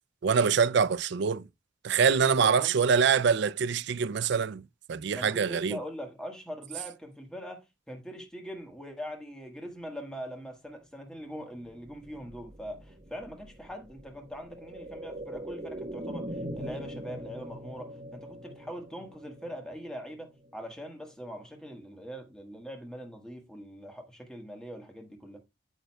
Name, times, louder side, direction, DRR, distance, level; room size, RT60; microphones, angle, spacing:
voice 1, 0.2-1.5 1.8-4.6 4.9-5.8, right 6 dB, 55° right, 0.4 m, -24 dB
voice 2, 2.2-2.8 5.1-25.4, equal, 5° left, 1.3 m, -42 dB
sound 1, 11.5-21.3 21.7-21.8, right 1 dB, 30° right, 1.0 m, -42 dB
8.9 x 7.9 x 2.2 m
head